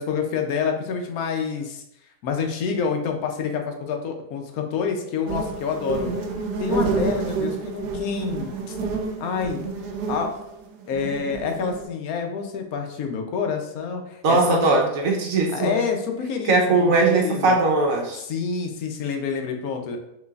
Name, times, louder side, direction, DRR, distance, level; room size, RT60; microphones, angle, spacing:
voice 1, 0.0-1.8 2.2-6.1 6.6-8.8 9.2-9.6 10.1-10.3 10.9-14.8 15.5-17.5 18.2-20.0, left 6 dB, 80° left, 4 dB, 1.1 m, -27 dB
sound 1, 5.3-11.8, right 4 dB, 90° right, 1.2 m, -29 dB
voice 2, 14.2-15.8 16.4-18.2, right 3 dB, 75° right, 0 dB, 1.2 m, -20 dB
5.8 x 3.2 x 2.4 m, 0.81 s
omnidirectional pair, 1.5 m